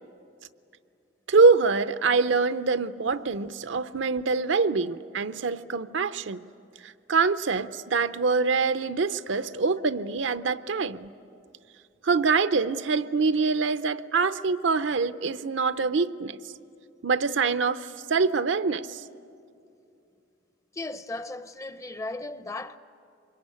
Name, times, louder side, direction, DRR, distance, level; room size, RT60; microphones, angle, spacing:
voice 1, 1.3-6.5 6.8-11.1 12.0-16.4 17.0-19.0, right 4 dB, 70° right, 0.6 m, -24 dB
voice 2, 20.7-22.8, left 2 dB, 15° left, 0.6 m, -36 dB
25.0 x 22.0 x 9.7 m
head